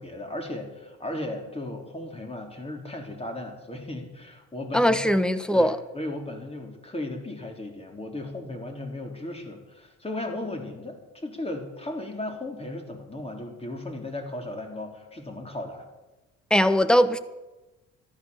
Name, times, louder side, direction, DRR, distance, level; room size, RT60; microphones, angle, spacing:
voice 1, 0.0-5.0 5.5-15.9, left 1 dB, 20° left, 2 dB, 4.0 m, -36 dB
voice 2, 4.7-5.8 16.5-17.2, equal, 5° left, 13 dB, 1.1 m, -20 dB
13.5 x 12.5 x 7.1 m, 1.1 s
supercardioid pair, 75°, 31 cm